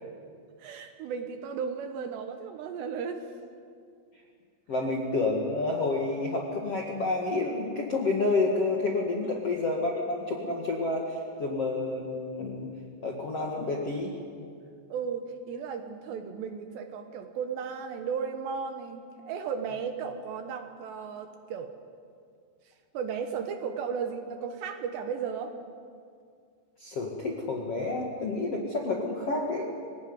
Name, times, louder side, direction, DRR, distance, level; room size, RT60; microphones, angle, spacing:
voice 1, 0.6-3.3 9.2-9.4 14.9-21.7 22.9-25.5, right 6 dB, 70° right, 6 dB, 3.0 m, -35 dB
voice 2, 4.7-12.7 13.0-14.1 26.8-29.7, left 3 dB, 50° left, -1 dB, 1.8 m, -29 dB
24.5 x 17.0 x 9.6 m, 2.3 s
omnidirectional pair, 5.7 m